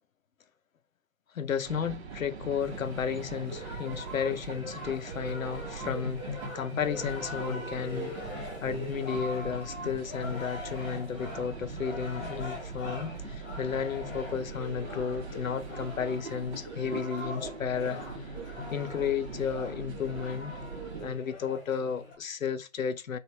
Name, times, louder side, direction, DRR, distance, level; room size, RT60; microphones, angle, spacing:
voice 1, 1.3-6.2 6.5-18.3 18.7-20.5 21.0-23.2, left 7 dB, 85° left, 0.6 m, -33 dB
sound 1, 1.6-21.1, right 6 dB, 55° right, 0.7 m, -43 dB
sound 2, 2.6-22.2, left 1 dB, 15° left, 1.0 m, -41 dB
3.0 x 2.4 x 3.0 m
figure-of-eight pair, 140°, 40 cm